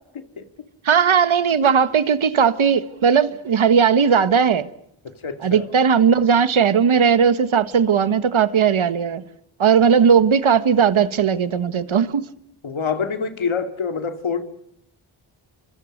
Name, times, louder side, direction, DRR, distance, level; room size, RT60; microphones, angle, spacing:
voice 1, 0.8-4.7 5.4-9.2 9.6-12.2, right 7 dB, 80° right, 1.5 m, -17 dB
voice 2, 5.0-5.6 12.6-14.4, left 5 dB, 80° left, 2.6 m, -26 dB
29.5 x 26.0 x 6.6 m
wide cardioid pair, 90°, 47 cm